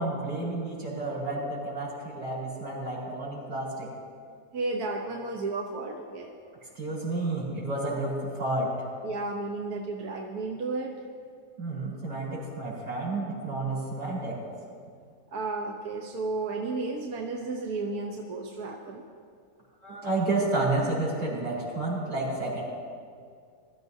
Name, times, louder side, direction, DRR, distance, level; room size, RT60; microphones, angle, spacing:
voice 1, 0.0-3.9 6.7-8.7 11.6-14.4 19.8-22.6, right 2 dB, 80° right, -6 dB, 5.0 m, -30 dB
voice 2, 4.5-6.3 9.0-11.0 15.3-19.0, right 3 dB, 65° right, 1 dB, 1.4 m, -33 dB
22.5 x 13.5 x 2.7 m, 2.3 s
omnidirectional pair, 1.8 m